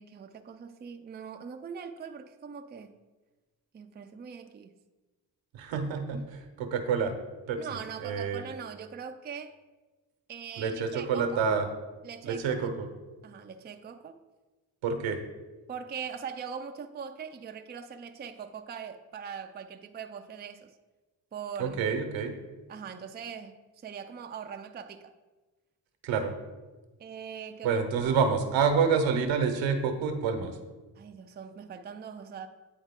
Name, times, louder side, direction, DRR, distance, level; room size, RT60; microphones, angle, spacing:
voice 1, 0.0-2.9 3.7-4.7 6.1-6.3 7.6-9.6 10.3-11.4 12.0-12.7 13.2-14.2 15.7-20.7 21.3-21.9 22.7-25.1 27.0-28.1 31.0-32.5, right 7 dB, 20° right, 6 dB, 0.5 m, -41 dB
voice 2, 5.5-6.2 6.6-7.1 7.5-8.4 10.6-11.7 12.2-12.9 14.8-15.2 21.6-22.3 26.0-26.3 27.6-30.5, right 6 dB, 75° right, 6 dB, 1.0 m, -28 dB
9.2 x 3.6 x 3.6 m, 1.2 s
hypercardioid pair, 50°, 46 cm